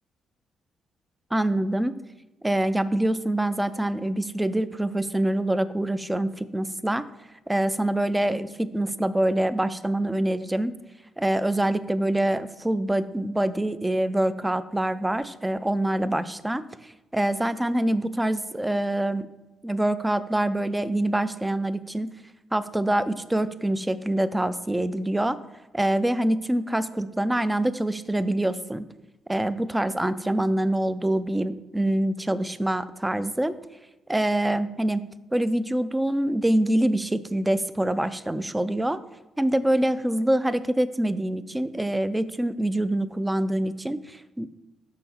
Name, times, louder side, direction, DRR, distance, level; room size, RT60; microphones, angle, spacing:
voice 1, 1.3-2.0 2.4-7.0 7.5-10.8 11.2-19.3 19.6-22.2 22.5-25.4 25.7-28.9 29.3-33.5 34.1-35.0 35.3-39.0 39.4-44.5, right 1 dB, 10° right, 14 dB, 0.4 m, -25 dB
6.2 x 5.7 x 4.2 m, 1.0 s
cardioid pair, 90°, 0 cm